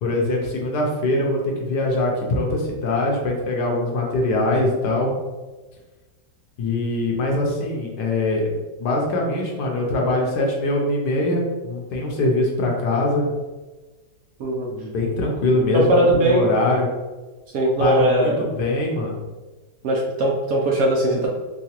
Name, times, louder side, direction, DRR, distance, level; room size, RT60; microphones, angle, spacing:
voice 1, 0.0-5.2 6.6-8.5 8.8-13.3 14.7-16.9 17.8-19.2, left 2 dB, 70° left, -1 dB, 1.3 m, -22 dB
voice 2, 15.7-16.4 17.5-18.4 19.8-21.3, right 1 dB, 65° right, -2 dB, 0.9 m, -19 dB
4.7 x 2.3 x 2.9 m, 1.2 s
omnidirectional pair, 1.9 m